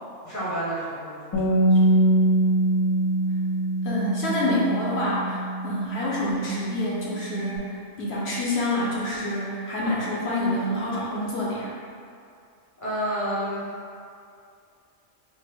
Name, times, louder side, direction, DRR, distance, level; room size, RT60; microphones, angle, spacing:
voice 1, 0.2-1.2 1.6-1.8 12.8-13.6, equal, 15° right, -10 dB, 0.7 m, -29 dB
Bass guitar, 1.3-7.6, right 1 dB, 40° left, 0.4 m, -24 dB
voice 2, 3.8-11.7, left 1 dB, 65° left, -6 dB, 0.9 m, -27 dB
4.4 x 2.1 x 3.4 m, 2.4 s
omnidirectional pair, 1.3 m